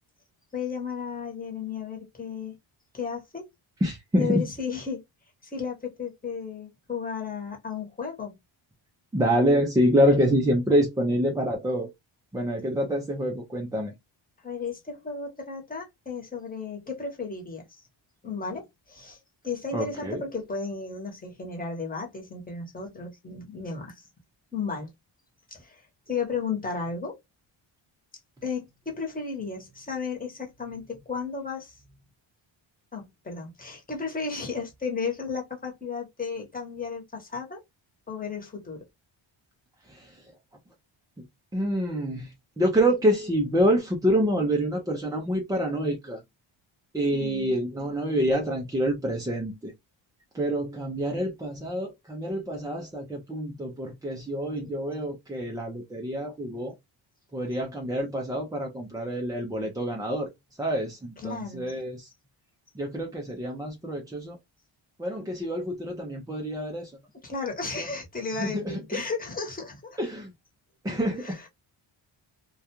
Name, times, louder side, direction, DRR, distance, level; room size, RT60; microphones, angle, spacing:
voice 1, 0.5-2.5 2.9-3.5 4.2-5.0 5.4-8.4 14.4-17.8 18.2-24.1 24.5-24.9 25.5-27.2 28.4-31.8 32.9-37.6 38.1-38.8 47.1-47.5 61.2-61.7 67.2-70.0 71.2-71.3, left 5 dB, 15° left, 0.9 m, -34 dB
voice 2, 3.8-4.5 9.1-11.9 12.3-13.9 19.7-20.2 39.8-40.3 41.2-41.3 41.5-46.2 46.9-49.7 50.3-56.8 57.3-60.3 60.6-62.1 62.7-64.4 65.0-67.0 67.8-67.9 68.4-69.0 70.0-70.3 70.8-71.4, equal, 10° right, 0.3 m, -27 dB
2.3 x 2.2 x 2.8 m
cardioid pair, 115°, 49 cm